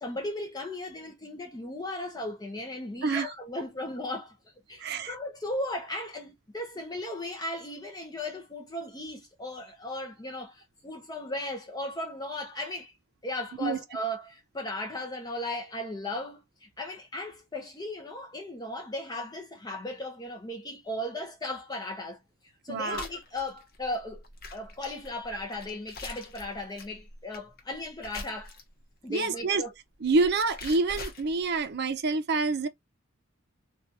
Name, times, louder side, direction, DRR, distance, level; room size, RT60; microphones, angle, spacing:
voice 1, 0.0-4.3 4.7-12.9 13.2-22.2 22.6-24.2 24.5-28.6 29.0-29.7, left 1 dB, 20° left, 0.6 m, -36 dB
voice 2, 4.8-5.1 13.6-13.8 22.7-23.1 29.1-29.6 30.0-32.7, right 3 dB, 55° right, 0.6 m, -27 dB
sound 1, 22.9-28.9 29.9-31.7, left 3 dB, 50° left, 0.8 m, -44 dB
2.9 x 2.3 x 2.5 m
head